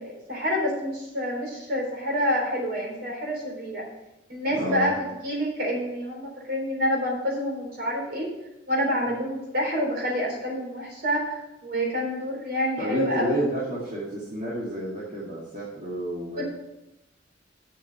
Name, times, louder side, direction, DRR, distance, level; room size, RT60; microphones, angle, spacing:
voice 1, 0.0-3.8 4.3-8.3 8.7-13.5 16.4-16.5, equal, 55° right, -1 dB, 4.0 m, -28 dB
voice 2, 4.5-4.9 12.8-16.4, right 1 dB, 40° right, -8 dB, 2.3 m, -30 dB
7.6 x 7.0 x 7.2 m, 0.94 s
head